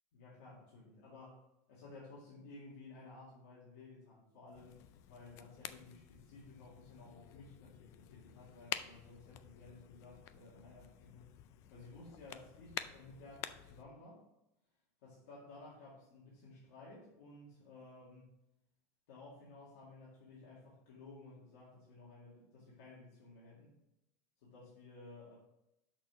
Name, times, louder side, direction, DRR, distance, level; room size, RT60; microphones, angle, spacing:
voice 1, 0.1-11.4 11.7-14.3 15.0-18.4 19.1-23.7 24.4-25.4, left 3 dB, 60° left, -7 dB, 2.1 m, -55 dB
sound 1, 4.5-13.8, left 11 dB, 35° left, 0.3 m, -49 dB
6.1 x 4.4 x 5.8 m, 0.88 s
supercardioid pair, 170°, 8 cm